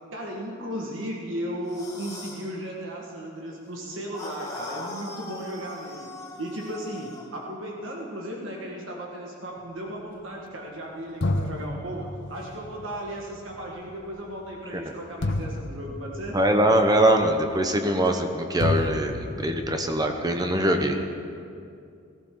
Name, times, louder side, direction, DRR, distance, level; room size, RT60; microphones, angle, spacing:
voice 1, 0.1-6.1 6.4-16.4, equal, 65° right, -1 dB, 1.6 m, -35 dB
sound 1, 1.6-2.5 4.1-7.3, left 2 dB, 15° left, 1.9 m, -39 dB
sound 2, 10.6-10.7 11.2-18.3 18.6-20.6, left 1 dB, 55° left, 0.7 m, -32 dB
voice 2, 16.3-21.0, right 1 dB, 20° right, 5 dB, 0.9 m, -22 dB
17.5 x 15.0 x 3.8 m, 2.4 s
head